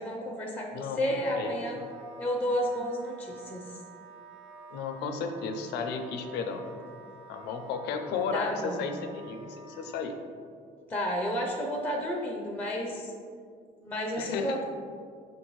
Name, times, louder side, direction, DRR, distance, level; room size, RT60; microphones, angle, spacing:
voice 1, 0.0-1.8 2.2-3.7 8.3-8.8 10.9-13.1 13.8-14.6, equal, 10° left, 1 dB, 0.4 m, -31 dB
voice 2, 0.7-1.6 4.7-6.7 7.3-10.1 14.2-14.6, left 5 dB, 85° left, 6 dB, 0.4 m, -34 dB
Wind instrument woodwind instrument, 1.7-10.1, right 4 dB, 90° right, 0.6 m, -50 dB
5.9 x 2.6 x 3.0 m, 2.2 s
cardioid pair, 110°, 17 cm